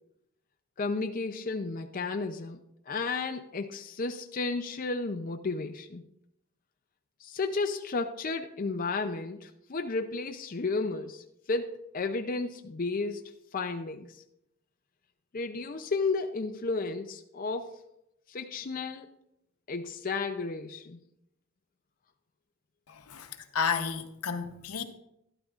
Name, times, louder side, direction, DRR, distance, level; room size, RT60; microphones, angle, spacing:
voice 1, 0.8-2.6 2.9-6.0 7.2-13.2 13.5-14.2 15.3-17.8 18.3-19.1 19.7-21.0, left 3 dB, 40° left, 0.5 m, -33 dB
voice 2, 22.9-24.8, left 6 dB, 80° left, 0.9 m, -32 dB
12.5 x 12.0 x 2.4 m
head